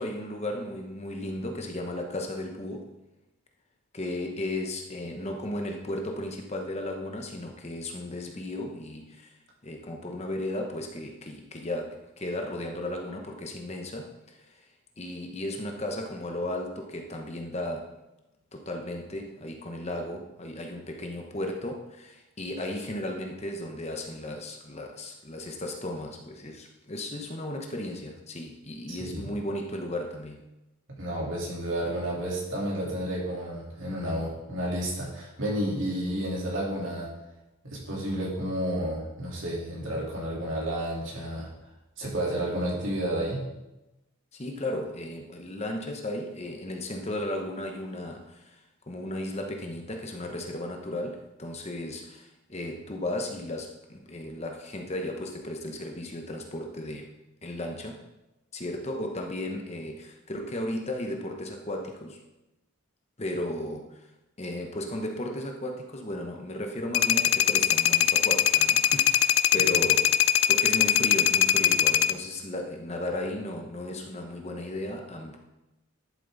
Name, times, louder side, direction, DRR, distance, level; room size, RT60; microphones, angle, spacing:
voice 1, 0.0-2.9 3.9-9.3 9.6-14.7 15.0-17.9 18.5-30.4 44.3-57.1 57.4-58.0 58.5-62.2 63.2-64.1 64.4-75.4, left 1 dB, 30° left, 3 dB, 1.0 m, -35 dB
voice 2, 28.9-29.3 30.9-37.1 37.6-41.5 42.0-43.5 69.6-69.8, right 1 dB, 60° right, -4 dB, 3.5 m, -31 dB
sound 1, 66.9-72.1, left 10 dB, 60° left, 0.4 m, -21 dB
11.5 x 7.5 x 4.0 m, 0.96 s
head